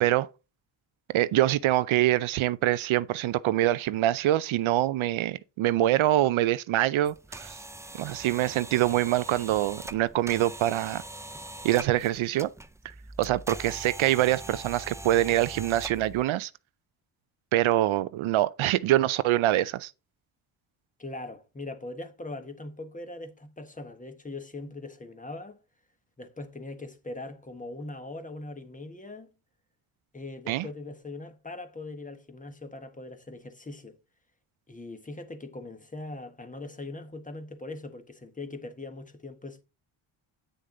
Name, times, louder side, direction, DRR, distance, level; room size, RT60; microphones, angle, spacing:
voice 1, 1.1-7.6 8.0-11.0 11.6-12.5 13.2-16.5 17.5-19.9 30.5-30.7, right 14 dB, 70° right, 0.6 m, -25 dB
sound 1, 7.0-16.2, right 2 dB, 5° right, 0.4 m, -42 dB
voice 2, 21.0-25.6 26.2-29.3 30.1-34.0 34.7-39.6, left 2 dB, 15° left, 1.3 m, -41 dB
9.2 x 6.6 x 3.8 m
cardioid pair, 120°, 49 cm